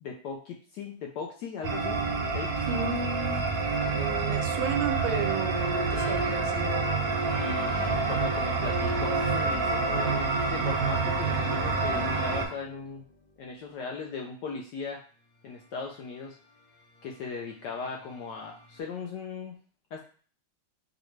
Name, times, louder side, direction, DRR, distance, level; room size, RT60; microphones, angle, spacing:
voice 1, 0.0-2.0 2.3-2.7 4.0-4.5 7.4-7.8 8.1-13.0 13.4-15.0 15.4-16.4 17.0-19.6 19.9-20.0, left 5 dB, 75° left, 1 dB, 1.0 m, -38 dB
sound 1, 1.6-12.5, right 4 dB, 60° right, 1.0 m, -28 dB
sound 2, 1.9-5.0 5.9-9.1 10.0-13.4 15.4-18.8, left 3 dB, 90° left, 1.7 m, -46 dB
voice 2, 2.7-3.5 3.9-6.8, right 5 dB, 80° right, 6 dB, 1.4 m, -33 dB
4.8 x 2.1 x 3.1 m, 0.42 s
omnidirectional pair, 2.3 m